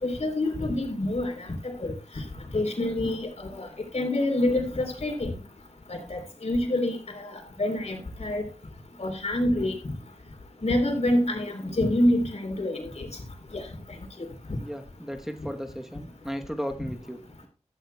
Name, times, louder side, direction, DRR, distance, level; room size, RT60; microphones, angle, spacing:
voice 1, 0.0-1.9 2.5-3.7 3.9-5.3 5.9-8.4 9.0-9.8 10.6-13.1 13.5-13.6, left 1 dB, 70° left, 3 dB, 3.6 m, -27 dB
voice 2, 14.6-17.5, equal, 5° right, 5 dB, 1.0 m, -35 dB
15.0 x 12.5 x 2.3 m, 0.34 s
wide cardioid pair, 70°, 12 cm